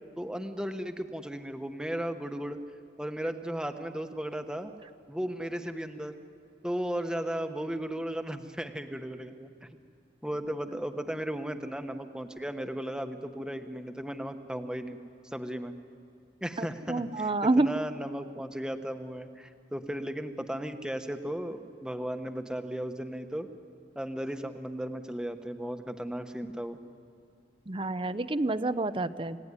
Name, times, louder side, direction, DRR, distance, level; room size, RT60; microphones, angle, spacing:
voice 1, 0.2-2.6 3.0-4.7 5.1-6.2 6.6-9.7 10.2-15.0 15.2-15.7 16.4-23.5 23.9-26.8, equal, 5° right, 7 dB, 1.1 m, -35 dB
voice 2, 16.6-17.7 27.7-29.4, right 2 dB, 30° right, 13 dB, 0.6 m, -28 dB
28.5 x 17.5 x 9.8 m, 2.3 s
head